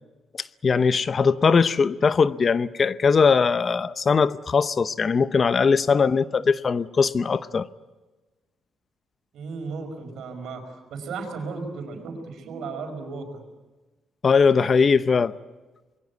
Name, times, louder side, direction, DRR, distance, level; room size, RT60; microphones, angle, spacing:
voice 1, 0.6-7.7 14.2-15.3, left 5 dB, 40° left, 0.7 m, -20 dB
voice 2, 9.3-13.4, right 4 dB, 75° right, 5.1 m, -35 dB
25.0 x 22.0 x 8.3 m
cardioid pair, 90°, 0 cm